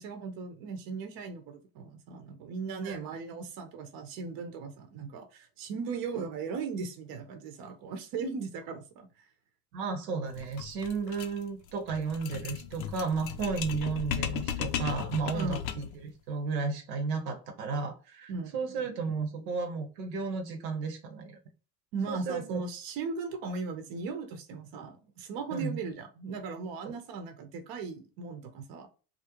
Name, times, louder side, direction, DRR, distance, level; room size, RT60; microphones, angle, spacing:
voice 1, 0.0-9.1 15.3-15.7 18.3-18.6 21.9-28.9, right 4 dB, 45° right, 0.6 m, -37 dB
voice 2, 9.7-21.4 22.1-22.6 25.5-25.8 26.8-26.9, right 4 dB, 75° right, 0.8 m, -33 dB
sound 1, 10.3-16.0, left 9 dB, 80° left, 0.5 m, -36 dB
2.4 x 2.0 x 2.8 m
hypercardioid pair, 80°, 50 cm